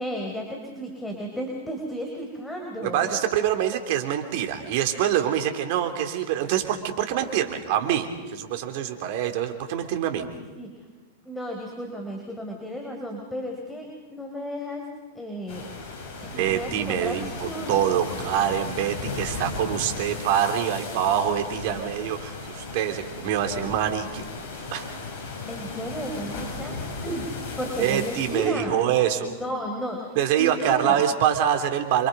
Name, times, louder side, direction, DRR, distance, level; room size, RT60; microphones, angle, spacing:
voice 1, 0.0-3.1 10.2-10.7 11.2-14.9 15.1-15.7 16.2-17.8 25.5-27.3 27.6-28.8 29.2-31.0, equal, 5° left, 1 dB, 4.4 m, -33 dB
voice 2, 2.8-10.3 16.2-24.2 24.7-24.9 27.8-29.3 30.1-32.1, right 10 dB, 55° right, 7 dB, 3.3 m, -25 dB
sound 1, 15.5-28.5, left 3 dB, 50° left, 7.6 m, -36 dB
28.5 x 26.0 x 5.3 m, 1.3 s
hypercardioid pair, 105°, 0 cm